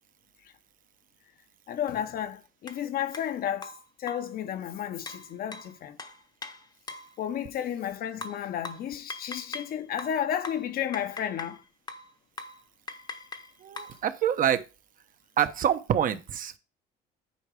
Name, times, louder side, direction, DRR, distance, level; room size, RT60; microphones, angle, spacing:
voice 1, 1.7-3.7 4.0-6.0 7.2-11.6, left 10 dB, 60° left, 1.1 m, -32 dB
sound 1, 2.7-2.8 3.1-3.3 3.6-4.4 5.1-7.2 8.2-9.7 10.0-11.6 11.9-12.1 12.4-12.6 12.9-14.0, left 3 dB, 25° left, 1.0 m, -41 dB
voice 2, 13.6-14.6 15.4-16.6, right 9 dB, 55° right, 1.1 m, -26 dB
9.8 x 4.7 x 4.9 m
cardioid pair, 110°, 17 cm